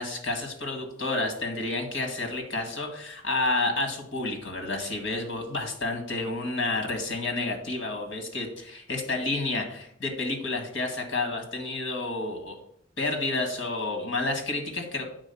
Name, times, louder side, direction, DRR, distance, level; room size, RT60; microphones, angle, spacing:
voice 1, 0.0-12.6 13.0-15.0, left 2 dB, 65° left, 4 dB, 2.0 m, -30 dB
8.9 x 4.0 x 7.0 m, 0.70 s
head